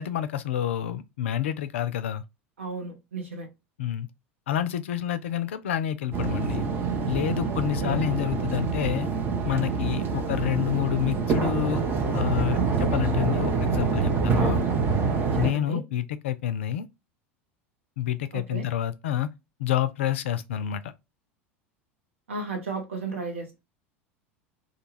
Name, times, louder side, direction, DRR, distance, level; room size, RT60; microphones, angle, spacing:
voice 1, 0.0-2.2 3.8-4.1 4.5-6.6 7.1-9.1 9.4-11.8 12.1-14.6 15.3-16.9 18.0-19.3 19.6-20.9, left 11 dB, 65° left, 0.4 m, -28 dB
voice 2, 2.6-3.5 7.5-7.9 15.2-15.8 18.3-18.7 22.3-23.6, right 3 dB, 70° right, 0.9 m, -35 dB
sound 1, 6.1-15.5, right 5 dB, 30° right, 0.6 m, -26 dB
2.3 x 2.2 x 3.0 m
figure-of-eight pair, 75°, 7 cm